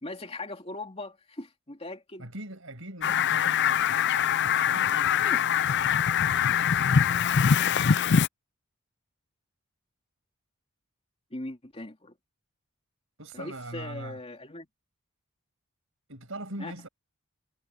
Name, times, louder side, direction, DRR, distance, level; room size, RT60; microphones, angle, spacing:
voice 1, 0.0-2.3 5.2-5.4 11.3-12.1 13.3-14.7 16.6-16.7, left 2 dB, 25° left, 2.7 m, -39 dB
voice 2, 2.2-4.2 4.6-5.5 6.4-6.9 13.2-14.2 16.1-16.9, right 1 dB, 65° right, 6.6 m, -42 dB
Fowl, 3.0-8.3, left 7 dB, 50° left, 0.5 m, -23 dB
head